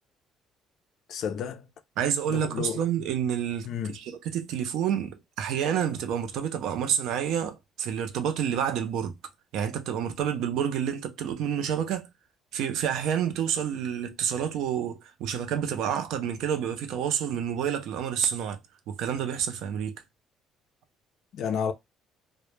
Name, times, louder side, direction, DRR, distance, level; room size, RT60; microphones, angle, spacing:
voice 1, 1.1-1.7 2.3-2.8 3.7-4.0 21.3-21.7, left 7 dB, 50° left, 0.3 m, -31 dB
voice 2, 2.0-9.2 9.5-12.1 12.5-18.6 18.9-20.0, right 8 dB, 65° right, 0.4 m, -29 dB
2.1 x 2.0 x 3.0 m
cardioid pair, 175°, 0 cm